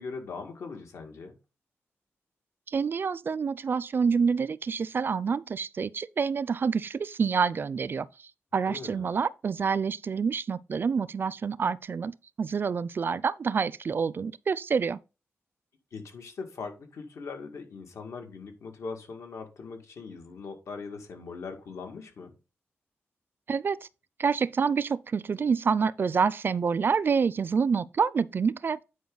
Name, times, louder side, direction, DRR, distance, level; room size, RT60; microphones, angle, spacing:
voice 1, 0.0-1.4 8.7-9.1 15.9-22.3, left 4 dB, 80° left, 2.0 m, -40 dB
voice 2, 2.7-8.1 8.5-15.0 23.5-23.8 24.2-28.8, right 5 dB, 45° right, 0.4 m, -27 dB
9.5 x 4.8 x 3.9 m
wide cardioid pair, 115°, 5 cm